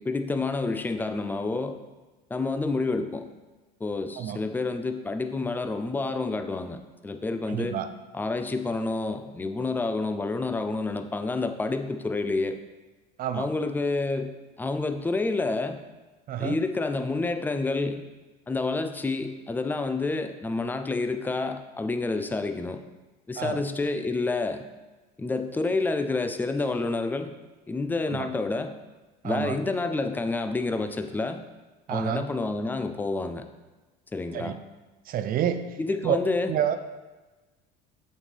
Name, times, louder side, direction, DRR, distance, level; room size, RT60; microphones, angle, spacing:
voice 1, 0.0-1.8 2.3-3.3 3.8-7.8 8.1-12.6 13.3-15.8 16.4-18.0 18.5-22.8 23.3-24.6 25.2-27.3 27.7-28.7 29.2-31.4 31.9-33.4 34.1-34.6 35.8-36.5, left 3 dB, 10° left, 8 dB, 0.4 m, -29 dB
voice 2, 7.5-7.9 13.2-13.5 16.3-16.6 23.4-23.6 28.1-28.3 29.2-29.6 31.9-32.2 34.3-34.6 35.1-35.6 36.0-36.2 36.5-36.8, right 10 dB, 45° right, 10 dB, 0.5 m, -28 dB
6.9 x 5.3 x 3.3 m, 1.2 s
supercardioid pair, 110°, 21 cm